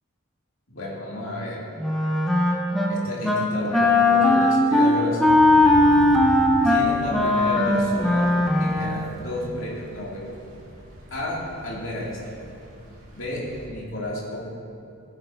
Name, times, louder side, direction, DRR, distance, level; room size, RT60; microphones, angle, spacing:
voice 1, 0.7-1.6 2.9-5.3 6.6-8.3 8.6-10.3 11.1-12.4 13.1-13.4 13.7-14.4, left 1 dB, 65° left, -5 dB, 2.6 m, -32 dB
Wind instrument woodwind instrument, 1.8-2.9 3.2-3.5 3.7-9.0, left 2 dB, ahead, 0.8 m, -19 dB
Thunder / Rain, 5.3-13.7, equal, 90° right, 2.1 m, -40 dB
15.0 x 8.4 x 2.8 m, 2.8 s
head